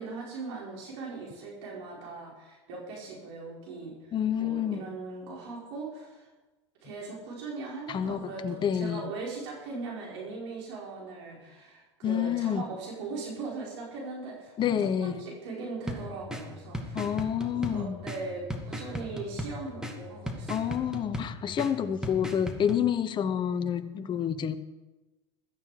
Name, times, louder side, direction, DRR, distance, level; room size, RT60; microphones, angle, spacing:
voice 1, 0.0-6.3 6.8-17.2 17.5-20.8, right 3 dB, 70° right, -2 dB, 4.8 m, -40 dB
voice 2, 4.1-4.8 7.9-9.0 12.0-12.6 14.6-15.2 16.9-18.0 20.5-24.6, left 9 dB, 30° left, 10 dB, 0.9 m, -28 dB
sound 1, 15.9-22.8, equal, 5° right, 2.3 m, -38 dB
16.0 x 13.0 x 5.0 m, 1.2 s
hypercardioid pair, 95°, 15 cm